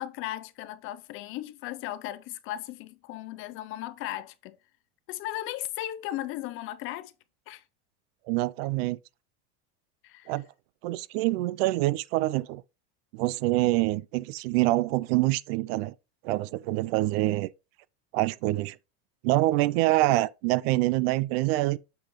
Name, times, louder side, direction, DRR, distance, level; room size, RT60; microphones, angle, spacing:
voice 1, 0.0-4.6 5.1-7.1 7.5-7.6 10.0-10.3, left 14 dB, 40° left, 0.5 m, -36 dB
voice 2, 8.3-9.0 10.3-10.5 10.8-12.6 13.1-15.9 16.2-17.5 18.1-18.8 19.2-21.8, right 18 dB, 60° right, 0.4 m, -25 dB
6.9 x 5.2 x 3.0 m
supercardioid pair, 145°, 35 cm